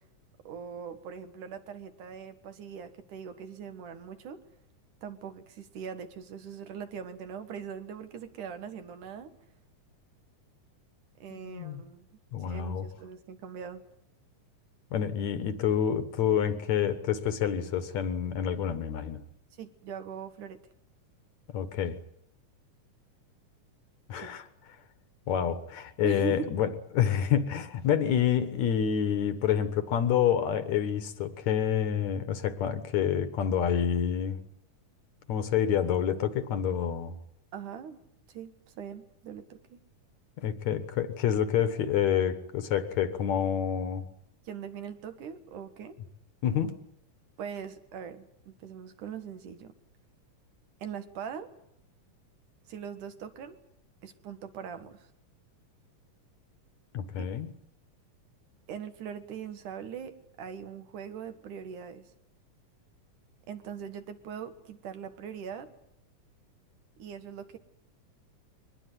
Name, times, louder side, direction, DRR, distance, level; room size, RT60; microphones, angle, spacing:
voice 1, 0.4-4.4 5.0-9.3 11.2-12.1 12.4-13.8 19.6-20.6 24.1-24.4 26.0-26.5 37.5-38.0 38.3-39.8 44.4-46.0 47.4-49.7 50.8-51.5 52.7-53.6 54.0-55.1 57.2-57.3 58.7-62.0 63.5-65.7 67.0-67.6, right 7 dB, 70° right, 9 dB, 3.1 m, -41 dB
voice 2, 11.3-11.8 12.3-12.9 14.9-19.2 21.5-22.0 24.1-24.5 25.3-34.4 35.3-37.2 40.4-44.0 46.4-46.8 56.9-57.5, left 9 dB, 65° left, 12 dB, 2.4 m, -28 dB
23.0 x 20.0 x 9.3 m, 0.75 s
omnidirectional pair, 3.7 m